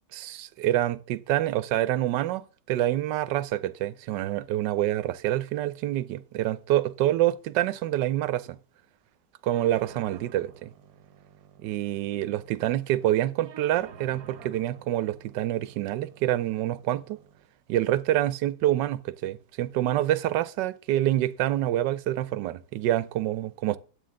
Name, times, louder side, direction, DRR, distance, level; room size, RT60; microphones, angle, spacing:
voice 1, 0.1-8.6 9.4-10.7 11.6-17.2 17.7-23.8, right 13 dB, 85° right, 1.3 m, -27 dB
sound 1, 9.5-17.5, right 7 dB, 65° right, 1.3 m, -51 dB
9.5 x 8.4 x 3.8 m
omnidirectional pair, 1.8 m